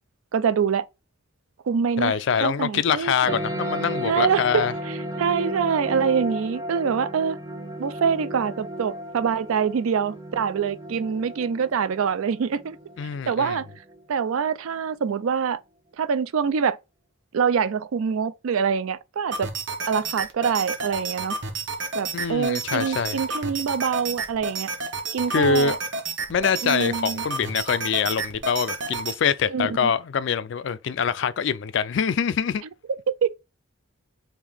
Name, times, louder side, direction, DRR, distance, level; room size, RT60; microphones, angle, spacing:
voice 1, 0.3-0.9 1.7-3.4 4.0-7.4 7.8-12.8 13.3-13.7 14.1-15.6 16.0-16.8 17.3-19.5 19.9-21.4 21.9-24.7 25.1-25.8 26.6-27.2 29.5-29.9 33.1-33.3, right 6 dB, 80° right, 0.4 m, -25 dB
voice 2, 2.0-4.7 13.0-13.6 22.1-23.2 25.3-25.8 26.3-32.6, left 6 dB, 60° left, 0.3 m, -24 dB
sound 1, 3.3-14.3, equal, 15° right, 0.6 m, -34 dB
sound 2, 19.3-29.2, right 4 dB, 60° right, 0.8 m, -31 dB
3.5 x 2.7 x 3.4 m
head